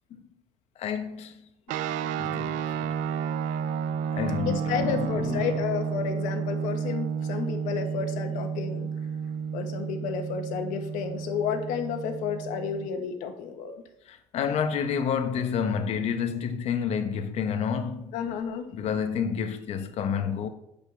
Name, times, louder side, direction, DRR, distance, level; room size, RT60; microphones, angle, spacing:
voice 1, 0.8-1.3 2.0-3.0 4.1-5.5 14.1-18.2 18.7-20.5, left 7 dB, 55° left, 1.0 m, -29 dB
sound 1, 1.7-12.9, right 7 dB, 90° right, 0.5 m, -31 dB
voice 2, 4.4-8.9 9.5-13.7 18.1-18.7, left 7 dB, 90° left, 1.4 m, -31 dB
10.0 x 5.2 x 6.9 m
cardioid pair, 135°, 13 cm